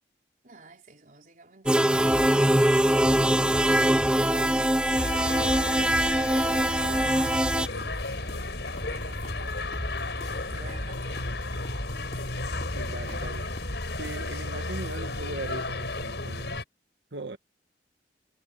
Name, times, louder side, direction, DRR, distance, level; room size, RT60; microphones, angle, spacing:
voice 1, 0.4-3.3 4.0-5.9 6.4-9.6 10.1-11.4, right 3 dB, 50° right, 4.3 m, -49 dB
sound 1, 1.7-7.7, right 1 dB, 5° right, 0.8 m, -22 dB
sound 2, 1.9-14.4, equal, 40° left, 3.4 m, -39 dB
sound 3, 4.9-16.6, left 2 dB, 85° left, 5.1 m, -34 dB
voice 2, 12.7-13.5 14.0-16.6 17.1-17.4, right 2 dB, 80° right, 1.5 m, -39 dB
head